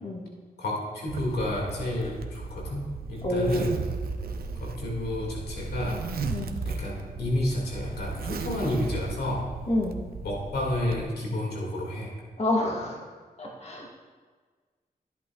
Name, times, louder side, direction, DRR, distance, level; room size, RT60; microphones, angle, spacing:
voice 1, 0.6-3.7 4.6-6.1 6.6-9.5 10.2-12.2, left 1 dB, 85° left, -2 dB, 2.1 m, -30 dB
Zipper (clothing), 1.1-11.0, right 4 dB, 70° right, 0.7 m, -36 dB
voice 2, 3.2-3.7 6.3-6.5 9.7-9.9 12.4-13.0 13.4-13.9, left 1 dB, 40° left, -2 dB, 1.5 m, -28 dB
13.5 x 8.2 x 2.3 m, 1.5 s
cardioid pair, 55°, 16 cm